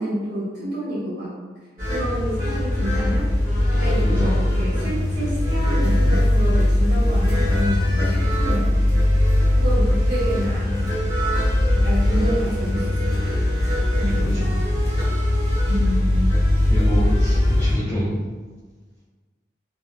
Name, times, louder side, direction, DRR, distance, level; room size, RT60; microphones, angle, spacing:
voice 1, 0.0-1.3 1.9-3.3 3.8-8.8 9.5-10.9 11.7-13.2 13.9-14.3 15.7-16.3, equal, 80° right, -10 dB, 1.0 m, -28 dB
sound 1, 1.8-17.7, left 1 dB, 45° right, 1.0 m, -20 dB
voice 2, 4.0-4.4 14.2-14.8 16.6-18.2, equal, 10° left, -10 dB, 0.3 m, -27 dB
2.8 x 2.1 x 2.2 m, 1.4 s
head